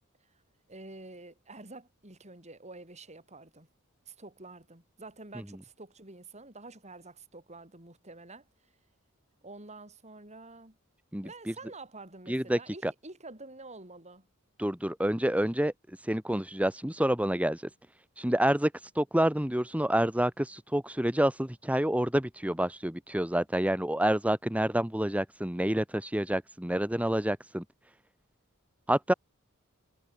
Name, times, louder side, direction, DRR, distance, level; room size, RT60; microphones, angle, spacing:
voice 1, 0.7-3.7 4.1-8.5 9.4-10.8 11.2-14.3, right 2 dB, 30° right, 6.8 m, -48 dB
voice 2, 11.1-11.5 12.3-12.9 14.6-17.7 18.2-27.6 28.9-29.1, right 1 dB, 5° right, 1.3 m, -28 dB
head